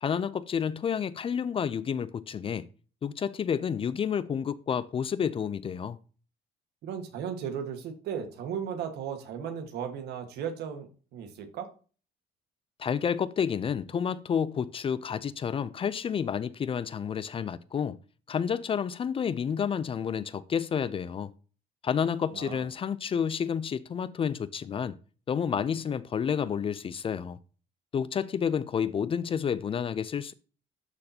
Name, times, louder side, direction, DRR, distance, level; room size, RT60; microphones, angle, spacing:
voice 1, 0.0-2.7 3.0-6.0 12.8-18.0 18.3-21.3 21.8-25.0 25.3-27.4 27.9-30.3, left 7 dB, 35° left, 0.4 m, -30 dB
voice 2, 6.8-11.7 22.3-22.6, right 7 dB, 75° right, 1.5 m, -36 dB
12.0 x 4.1 x 2.8 m
cardioid pair, 110°, 17 cm